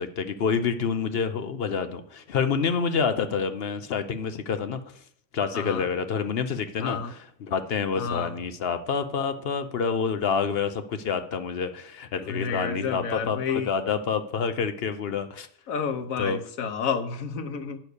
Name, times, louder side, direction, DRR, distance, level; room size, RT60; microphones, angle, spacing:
voice 1, 0.0-4.8 5.3-15.5 16.2-16.4, left 6 dB, 55° left, 10 dB, 0.8 m, -28 dB
voice 2, 5.5-5.9 6.8-7.1 8.0-8.3 12.3-13.7 15.7-17.8, left 5 dB, 85° left, 8 dB, 1.3 m, -30 dB
9.4 x 4.4 x 6.6 m, 0.65 s
omnidirectional pair, 1.4 m